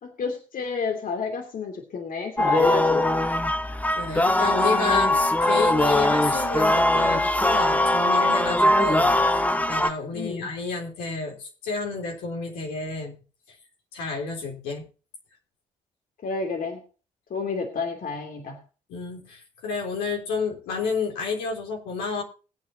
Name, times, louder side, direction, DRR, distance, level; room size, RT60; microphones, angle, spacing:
voice 1, 0.0-3.1 10.1-10.5 16.2-16.8 17.3-18.6, left 4 dB, 55° left, 3 dB, 2.9 m, -30 dB
sound 1, 2.4-9.9, left 1 dB, 10° left, 1.4 m, -21 dB
voice 2, 3.9-9.2 9.7-13.2 13.9-14.9 18.9-22.2, left 4 dB, 75° left, 0 dB, 3.8 m, -30 dB
20.0 x 9.1 x 2.8 m, 0.34 s
hypercardioid pair, 45°, 17 cm